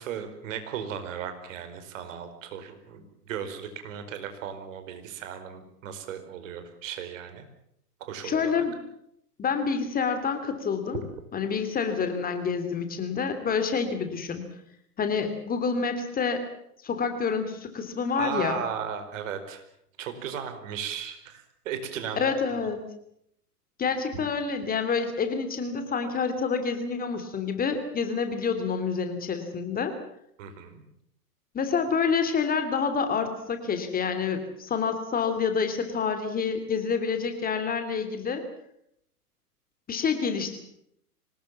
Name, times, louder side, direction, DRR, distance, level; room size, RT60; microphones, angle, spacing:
voice 1, 0.0-7.5 8.1-8.6 18.2-19.6 20.0-22.3 24.1-24.2 30.4-30.8, right 8 dB, 50° right, 8 dB, 4.9 m, -36 dB
voice 2, 8.2-8.7 9.4-11.0 11.3-14.4 15.0-16.4 16.8-18.6 22.2-22.8 23.8-29.9 31.5-38.4 39.9-40.6, left 5 dB, 20° left, 8 dB, 3.0 m, -28 dB
25.5 x 19.5 x 7.5 m, 0.72 s
figure-of-eight pair, 110°, 47 cm